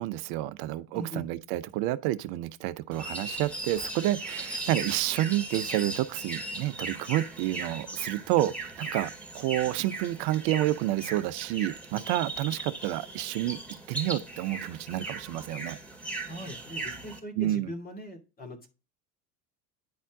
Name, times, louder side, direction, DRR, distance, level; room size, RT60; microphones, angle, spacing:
voice 1, 0.0-13.6 13.9-15.8 17.4-17.7, right 15 dB, 55° right, 0.8 m, -29 dB
voice 2, 0.9-1.3 16.3-18.7, right 1 dB, 20° left, 2.6 m, -40 dB
sound 1, 2.9-17.2, right 2 dB, 5° left, 2.4 m, -38 dB
10.5 x 4.3 x 3.6 m
hypercardioid pair, 75°, 46 cm